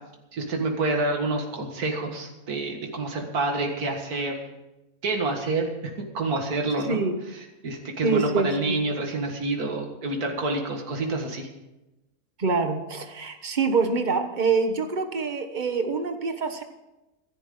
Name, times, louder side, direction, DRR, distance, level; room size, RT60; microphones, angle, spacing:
voice 1, 0.3-4.4 5.0-7.0 7.6-11.5, right 2 dB, 85° right, 2 dB, 2.2 m, -28 dB
voice 2, 8.0-8.8 12.4-16.6, right 4 dB, 35° right, 7 dB, 1.3 m, -25 dB
25.0 x 11.0 x 3.8 m, 1.0 s
omnidirectional pair, 1.6 m